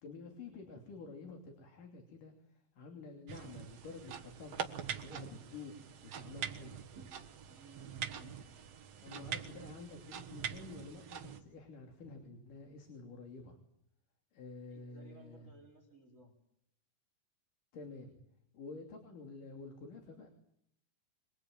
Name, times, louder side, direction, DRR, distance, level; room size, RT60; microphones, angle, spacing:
voice 1, 0.0-6.8 9.0-13.6 14.3-15.5 17.7-18.1 18.5-20.3, left 3 dB, 80° left, 3 dB, 4.5 m, -50 dB
sound 1, 3.3-11.4, right 8 dB, 55° right, 2.4 m, -44 dB
voice 2, 7.5-8.4 14.7-16.3, right 2 dB, 25° right, 3 dB, 4.5 m, -58 dB
27.0 x 21.5 x 9.0 m, 0.74 s
omnidirectional pair, 3.7 m